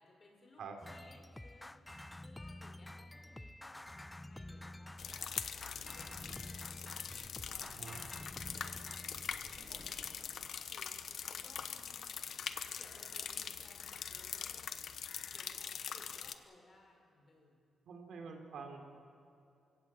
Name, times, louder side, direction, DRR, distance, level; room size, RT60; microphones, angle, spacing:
voice 1, 0.0-0.6 0.9-1.8 2.2-7.0 7.5-9.1 9.4-10.9 11.2-12.3 12.7-14.6 15.3-17.6 18.0-18.3, left 2 dB, 35° left, 1 dB, 5.3 m, -62 dB
sound 1, 0.8-9.3, left 1 dB, 10° left, 0.4 m, -50 dB
sound 2, 4.9-10.4, equal, 10° right, 5.1 m, -57 dB
sound 3, 5.0-16.4, left 7 dB, 65° left, 1.0 m, -43 dB
voice 2, 17.8-18.8, right 5 dB, 75° right, 4 dB, 3.3 m, -47 dB
28.0 x 17.0 x 7.8 m, 2.6 s
cardioid pair, 120°, 0 cm